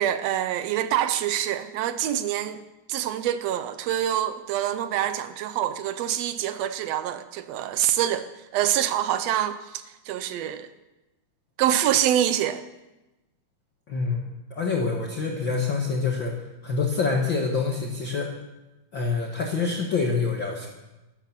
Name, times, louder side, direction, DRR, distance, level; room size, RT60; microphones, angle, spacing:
voice 1, 0.0-2.6 2.9-8.3 8.5-9.6 10.1-10.7 11.6-12.6, right 11 dB, 85° right, 11 dB, 1.4 m, -25 dB
voice 2, 13.9-14.3 14.5-16.4 16.6-18.3 18.9-20.7, left 4 dB, 45° left, 0 dB, 1.8 m, -26 dB
14.0 x 12.5 x 7.4 m, 1.0 s
omnidirectional pair, 3.8 m